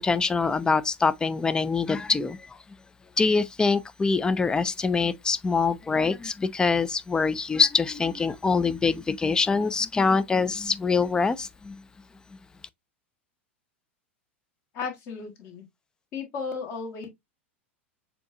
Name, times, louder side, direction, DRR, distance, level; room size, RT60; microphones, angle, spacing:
voice 1, 0.0-2.6 3.2-11.8, left 4 dB, 10° left, 0.4 m, -24 dB
voice 2, 14.7-15.6 16.1-17.1, left 5 dB, 40° left, 1.4 m, -34 dB
6.8 x 2.7 x 2.5 m
figure-of-eight pair, 85°, 7 cm